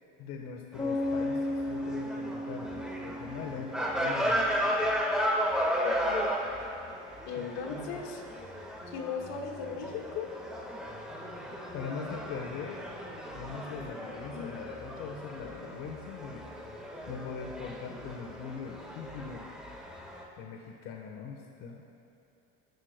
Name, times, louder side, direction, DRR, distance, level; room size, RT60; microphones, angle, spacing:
voice 1, 0.2-4.5 4.7-4.9 7.4-7.9 11.4-13.1 13.3-16.5 17.1-19.5 20.4-21.8, left 5 dB, 55° left, 1 dB, 1.2 m, -41 dB
sound 1, 0.7-20.2, equal, ahead, 1.5 m, -35 dB
sound 2, 0.8-4.7, left 1 dB, 20° left, 2.2 m, -35 dB
voice 2, 5.8-6.3 7.3-8.2 8.9-10.4 14.3-14.5, left 6 dB, 70° left, 2 dB, 1.6 m, -38 dB
22.5 x 13.0 x 2.2 m, 2.8 s
cardioid pair, 135°, 30 cm